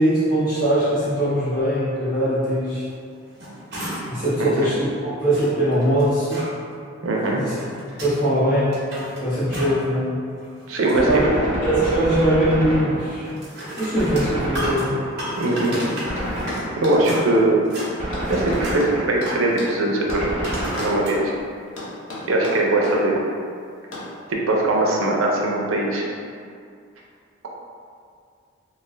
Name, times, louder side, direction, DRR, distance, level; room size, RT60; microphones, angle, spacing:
voice 1, 0.0-2.8 4.1-4.8 5.0-6.4 7.3-7.5 8.0-8.8 9.2-10.1 11.1-11.2 11.6-13.3 13.8-15.0, right 1 dB, 45° left, -13 dB, 1.2 m, -21 dB
sound 1, 3.1-4.2 4.6-4.7 5.3-6.5 7.3-8.2 8.6-9.9 10.3-11.3 13.2-16.7 16.9-17.9 18.2-18.8 19.2-19.7 20.4-21.2 21.8-21.9, equal, 55° right, 0.8 m, -33 dB
voice 2, 7.0-7.4 10.7-11.4 15.4-15.8 16.8-17.6 18.3-20.3 20.8-21.3 22.3-23.2 24.3-26.1, right 2 dB, 85° right, -1 dB, 0.5 m, -21 dB
Gunshot gunfire, 10.9-13.4 14.0-15.4 16.1-17.1 18.0-19.4 20.1-21.3, equal, 30° right, 0.6 m, -29 dB
sound 2, 15.5-17.0 17.8-19.8 20.1-21.0 21.8-23.0 23.9-24.1, left 1 dB, 85° left, 0.6 m, -34 dB
2.5 x 2.4 x 3.1 m, 2.3 s
head